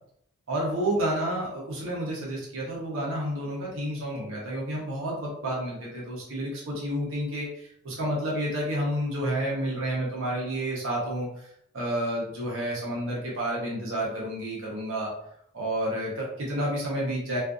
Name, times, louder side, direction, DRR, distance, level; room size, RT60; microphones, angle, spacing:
voice 1, 0.5-11.5 11.7-15.1 15.5-17.4, right 1 dB, 70° right, -4 dB, 0.8 m, -30 dB
2.5 x 2.4 x 2.4 m, 0.70 s
head